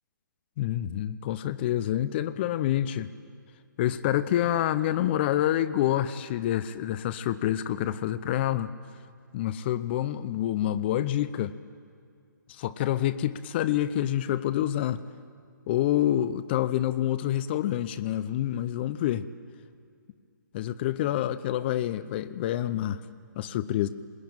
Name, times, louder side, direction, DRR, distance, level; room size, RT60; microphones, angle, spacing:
voice 1, 0.6-3.1 3.8-8.7 9.3-11.5 12.5-15.0 15.7-19.3 20.5-23.0 23.4-23.9, left 12 dB, 30° left, 0.7 m, -27 dB
21.5 x 21.0 x 8.9 m
hypercardioid pair, 145°, 11 cm